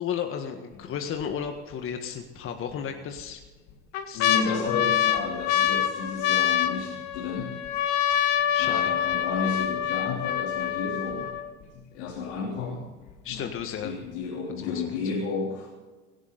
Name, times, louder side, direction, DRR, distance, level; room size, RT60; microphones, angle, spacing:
voice 1, 0.0-3.4 4.1-4.8 8.5-8.9 13.2-13.9 14.6-15.0, left 8 dB, 40° left, 5 dB, 1.7 m, -34 dB
sound 1, 0.7-1.2 1.7-1.8 2.7-3.2 3.7-11.6 12.4-12.5 12.6-13.1 13.6-13.7, left 10 dB, 55° left, 2.1 m, -26 dB
voice 2, 4.1-7.6 8.6-11.3 11.7-12.9 13.3-13.5 13.8-15.7, left 4 dB, 75° left, -2 dB, 3.5 m, -32 dB
17.5 x 16.5 x 4.1 m, 1.3 s
hypercardioid pair, 95°, 35 cm